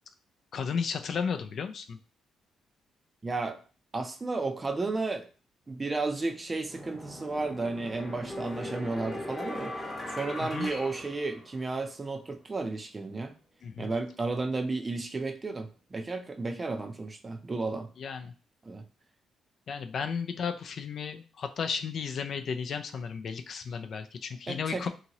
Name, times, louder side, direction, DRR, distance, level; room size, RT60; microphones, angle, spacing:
voice 1, 0.5-2.0 10.5-10.7 13.6-13.9 18.0-18.3 19.7-24.9, left 6 dB, 55° left, 7 dB, 0.4 m, -34 dB
voice 2, 3.2-3.6 3.9-5.3 5.7-9.7 10.1-13.3 13.8-17.9 18.6-18.8 24.5-24.9, right 3 dB, 25° right, 6 dB, 0.5 m, -33 dB
sound 1, 6.7-11.9, left 1 dB, 25° left, 0.9 m, -39 dB
2.8 x 2.7 x 2.8 m, 0.37 s
cardioid pair, 90°, 0 cm